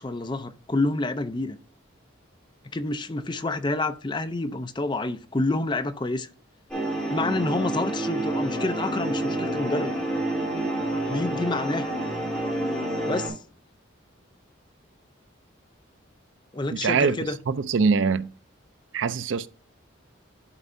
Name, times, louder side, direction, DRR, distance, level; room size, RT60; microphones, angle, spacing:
voice 1, 0.0-1.6 2.7-6.3 7.1-10.0 11.1-11.9 13.1-13.4 16.5-17.4, left 2 dB, 25° left, 0.5 m, -28 dB
sound 1, 6.7-13.3, right 1 dB, 5° left, 3.1 m, -28 dB
voice 2, 16.7-17.2 17.5-18.3 18.9-19.5, right 5 dB, 70° right, 0.4 m, -23 dB
11.5 x 4.5 x 2.6 m
head